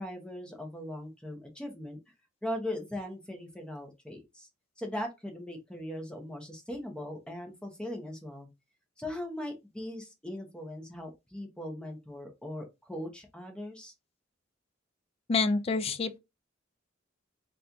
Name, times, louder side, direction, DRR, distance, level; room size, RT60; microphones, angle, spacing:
voice 1, 0.0-2.0 2.4-4.5 4.8-8.5 9.0-13.9, left 1 dB, 5° left, 0.7 m, -39 dB
voice 2, 15.3-16.2, left 4 dB, 30° left, 0.3 m, -27 dB
4.1 x 2.2 x 2.5 m
head